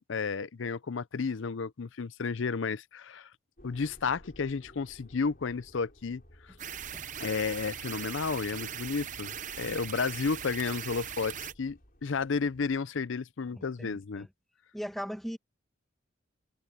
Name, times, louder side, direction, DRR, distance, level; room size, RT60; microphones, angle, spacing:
voice 1, 0.0-3.3 3.6-6.2 7.2-9.3 9.6-14.3, left 5 dB, 75° left, 0.6 m, -32 dB
sound 1, 3.6-12.8, equal, 45° left, 6.3 m, -58 dB
sound 2, 6.6-11.5, right 9 dB, 40° right, 0.8 m, -40 dB
voice 2, 13.5-14.3 14.7-15.4, equal, ahead, 1.1 m, -39 dB
head